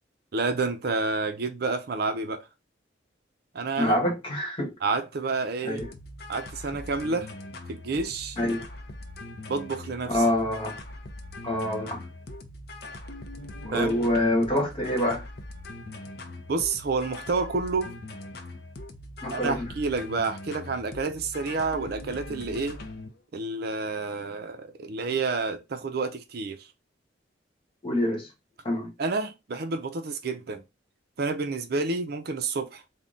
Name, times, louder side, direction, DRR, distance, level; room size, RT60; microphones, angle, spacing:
voice 1, 0.3-2.5 3.5-3.9 4.8-5.8 6.3-7.3 7.7-8.4 9.5-10.2 13.7-14.0 16.5-17.9 19.3-22.8 23.3-26.7 29.0-30.6 31.2-32.8, right 3 dB, 55° right, 0.5 m, -29 dB
voice 2, 3.8-4.7 5.6-5.9 8.4-8.6 10.1-10.8 11.4-12.0 13.7-15.2 19.2-19.7 27.8-28.3 28.6-28.9, left 1 dB, 30° left, 1.3 m, -26 dB
sound 1, 5.8-23.1, left 2 dB, 55° left, 0.5 m, -41 dB
3.7 x 2.2 x 3.8 m
head